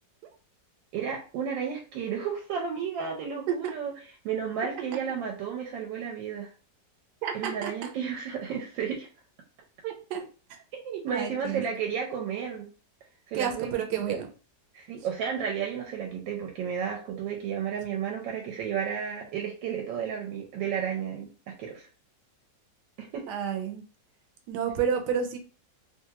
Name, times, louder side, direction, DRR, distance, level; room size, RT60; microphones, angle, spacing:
voice 1, 0.9-3.9 4.2-6.5 7.3-9.1 10.7-12.7 13.3-14.2 14.7-21.3 21.6-21.9 23.0-23.2, right 7 dB, 90° right, 1 dB, 1.3 m, -32 dB
voice 2, 7.2-7.9 9.8-10.2 10.5-10.6 11.1-11.6 13.3-14.3 23.3-23.8 24.5-25.4, right 7 dB, 70° right, 4 dB, 1.1 m, -30 dB
3.0 x 2.3 x 2.8 m, 0.36 s
omnidirectional pair, 2.0 m